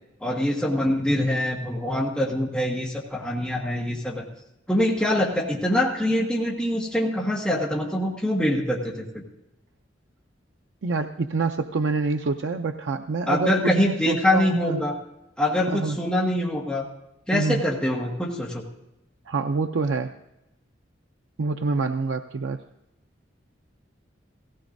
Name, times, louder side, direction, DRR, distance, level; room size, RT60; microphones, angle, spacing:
voice 1, 0.2-4.2 4.7-9.2 13.3-14.9 15.4-16.9 17.3-18.6, left 1 dB, 5° left, -3 dB, 1.4 m, -24 dB
voice 2, 10.8-14.8 15.7-16.0 17.3-17.6 19.3-20.1 21.4-22.6, right 4 dB, 80° right, 6 dB, 0.5 m, -26 dB
17.0 x 16.0 x 2.6 m, 0.91 s
head